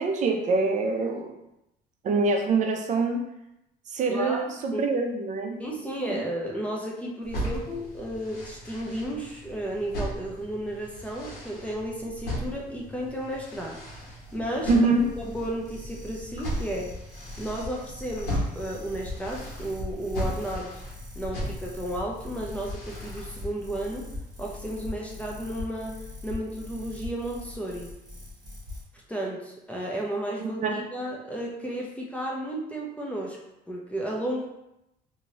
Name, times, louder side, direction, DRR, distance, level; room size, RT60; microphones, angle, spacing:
voice 1, 0.0-1.3 2.0-3.2 3.9-5.6 6.1-6.2 14.7-15.0 30.4-30.8, right 3 dB, 45° right, 4 dB, 0.5 m, -25 dB
voice 2, 4.1-4.9 5.6-13.8 14.3-14.7 15.3-16.9 17.4-20.7 21.1-24.1 24.4-26.0 26.2-27.9 29.1-33.4 33.7-34.5, right 1 dB, 10° left, -3 dB, 0.5 m, -33 dB
sound 1, 7.2-23.5, equal, 70° left, 1.3 m, -37 dB
sound 2, 13.4-28.8, left 2 dB, 20° right, 1.3 m, -42 dB
2.9 x 2.7 x 2.8 m, 0.87 s
cardioid pair, 110°, 17 cm